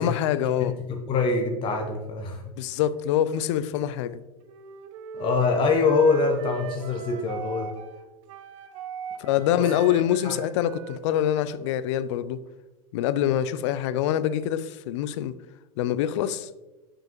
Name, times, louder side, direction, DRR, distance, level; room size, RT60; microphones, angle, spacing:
voice 1, 0.0-0.8 2.6-4.2 9.2-12.4 12.9-15.3 15.8-16.5, left 11 dB, 55° left, 0.4 m, -25 dB
voice 2, 0.6-2.4 5.1-7.7 10.2-10.3, left 4 dB, 30° left, 0.8 m, -24 dB
Wind instrument woodwind instrument, 4.5-11.9, right 6 dB, 60° right, 0.7 m, -39 dB
6.1 x 5.1 x 3.0 m
hypercardioid pair, 95°, 18 cm